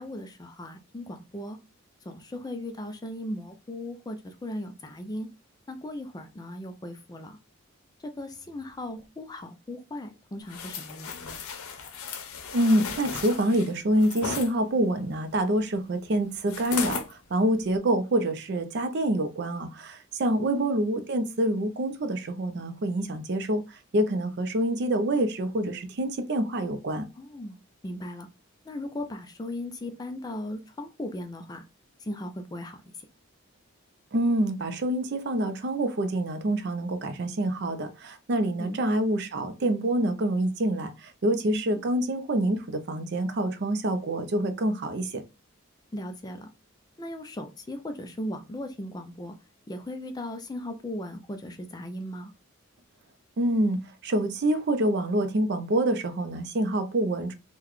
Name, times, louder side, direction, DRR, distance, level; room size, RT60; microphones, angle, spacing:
voice 1, 0.0-1.6 2.1-5.3 5.7-7.4 8.0-11.4 20.4-20.6 27.2-27.6 27.8-28.3 28.7-31.6 32.0-32.8 38.6-38.8 45.9-46.5 47.0-49.3 49.7-52.3, left 1 dB, 20° left, 0.3 m, -37 dB
sound 1, 10.5-14.5 16.5-17.1 17.6-17.8, left 6 dB, 90° left, 0.6 m, -35 dB
voice 2, 12.5-23.6 23.9-27.0 34.1-45.2 53.4-57.3, right 1 dB, 50° right, 0.4 m, -26 dB
3.8 x 2.2 x 3.0 m
head